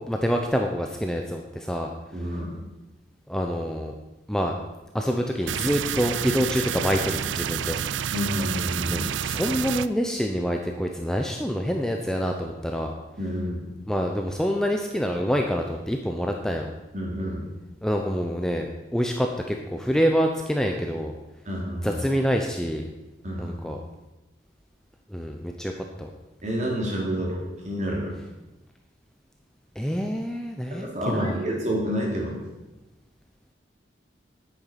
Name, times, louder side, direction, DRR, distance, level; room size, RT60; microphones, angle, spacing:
voice 1, 0.0-1.9 3.3-3.9 4.3-4.6 4.9-7.8 8.9-12.9 13.9-16.7 17.8-21.1 21.8-22.9 23.4-23.8 25.1-25.7 26.0-26.1 29.8-31.4, equal, 5° left, 2 dB, 0.7 m, -26 dB
voice 2, 2.1-2.5 8.1-9.1 13.2-13.6 16.9-17.4 21.4-22.0 23.2-23.6 26.4-28.1 30.7-32.4, equal, 40° right, -2 dB, 3.1 m, -29 dB
sound 1, 5.5-9.9, right 9 dB, 90° right, 0.4 m, -29 dB
9.0 x 9.0 x 5.8 m, 1.0 s
head